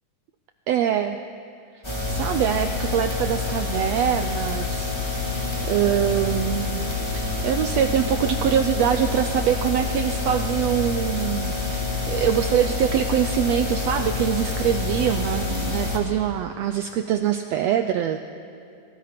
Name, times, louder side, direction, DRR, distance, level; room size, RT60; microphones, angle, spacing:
voice 1, 0.7-1.2 2.1-5.2 5.7-18.2, right 10 dB, 80° right, 8 dB, 1.5 m, -24 dB
sound 1, 1.8-16.0, left 3 dB, 10° left, 2.5 m, -27 dB
27.5 x 22.0 x 5.1 m, 2.5 s
omnidirectional pair, 3.6 m